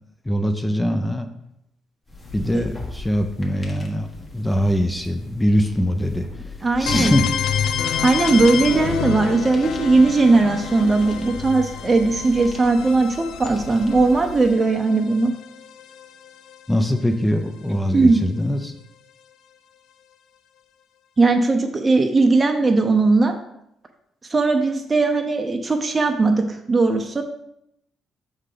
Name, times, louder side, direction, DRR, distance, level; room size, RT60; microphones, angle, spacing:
voice 1, 0.3-1.3 2.3-4.1 4.3-6.5 6.8-7.3 16.7-18.7, equal, 10° left, 6 dB, 0.6 m, -22 dB
sound 1, 2.1-14.5, left 3 dB, 30° left, 1.4 m, -38 dB
voice 2, 6.6-7.1 8.0-15.3 17.9-18.2 21.2-23.3 24.3-27.2, right 3 dB, 30° right, 4 dB, 0.7 m, -18 dB
sound 2, 6.9-16.6, left 8 dB, 85° left, 0.4 m, -29 dB
5.5 x 3.8 x 5.0 m, 0.78 s
cardioid pair, 80°, 0 cm